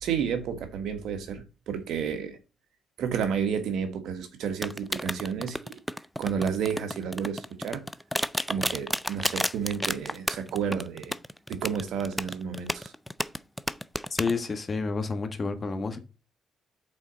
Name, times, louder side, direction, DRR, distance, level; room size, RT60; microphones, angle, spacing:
voice 1, 0.0-2.4 3.0-5.8 6.2-7.8 8.5-11.1 11.5-12.9, right 7 dB, 80° right, 1.4 m, -31 dB
sound 1, 4.6-14.3, equal, ahead, 0.4 m, -30 dB
voice 2, 14.1-16.0, left 4 dB, 35° left, 1.3 m, -29 dB
6.2 x 4.0 x 5.0 m
cardioid pair, 90°, 0 cm